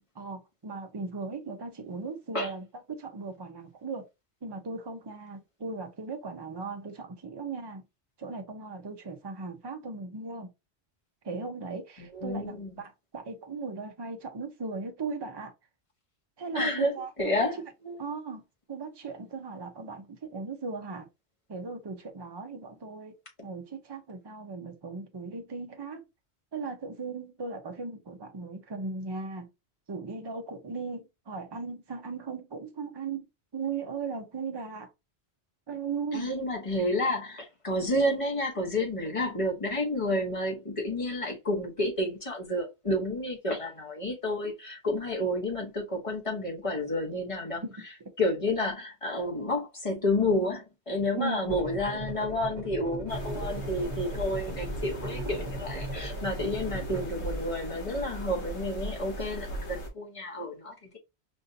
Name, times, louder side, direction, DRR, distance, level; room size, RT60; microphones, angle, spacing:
voice 1, 0.2-4.1 4.4-7.8 8.2-10.5 11.2-15.5 16.4-17.4 18.0-18.4 18.7-21.1 21.5-26.1 26.5-29.5 29.9-33.3 33.5-34.9 35.7-36.3 47.6-47.8 51.2-51.5, right 4 dB, 30° right, 0.6 m, -37 dB
voice 2, 12.0-12.8 16.5-17.5 17.8-18.0 36.1-47.6 48.2-61.0, left 1 dB, 30° left, 1.2 m, -30 dB
sound 1, 51.5-57.0, right 2 dB, 45° right, 1.2 m, -38 dB
sound 2, 53.1-59.9, equal, 80° left, 1.7 m, -38 dB
5.4 x 2.6 x 2.7 m
omnidirectional pair, 1.1 m